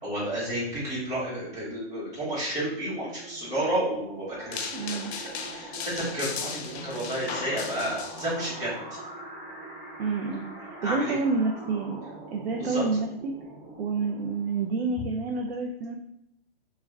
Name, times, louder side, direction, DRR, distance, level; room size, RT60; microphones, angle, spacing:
voice 1, 0.0-8.9 10.8-11.1 12.6-12.8, right 1 dB, 10° right, -10 dB, 1.0 m, -31 dB
sound 1, 2.5-14.9, right 2 dB, 45° right, 0.8 m, -44 dB
sound 2, 4.5-8.5, left 6 dB, 90° left, 0.5 m, -37 dB
voice 2, 4.7-5.1 10.0-12.0 12.3-13.3 13.8-15.9, right 4 dB, 80° right, 2 dB, 0.5 m, -29 dB
2.3 x 2.1 x 3.5 m, 0.77 s
hypercardioid pair, 155°, 32 cm